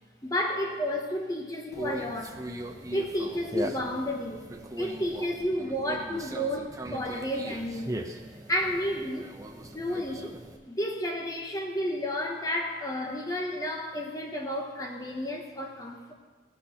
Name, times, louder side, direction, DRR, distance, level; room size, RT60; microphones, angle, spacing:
voice 1, 0.2-2.4 2.9-4.5 4.8-8.1 8.5-9.3 9.7-10.4 10.7-16.1, equal, 20° left, 1 dB, 1.0 m, -31 dB
Conversation, 1.7-10.6, right 1 dB, 20° right, 0.6 m, -39 dB
16.5 x 6.3 x 5.7 m, 1.4 s
head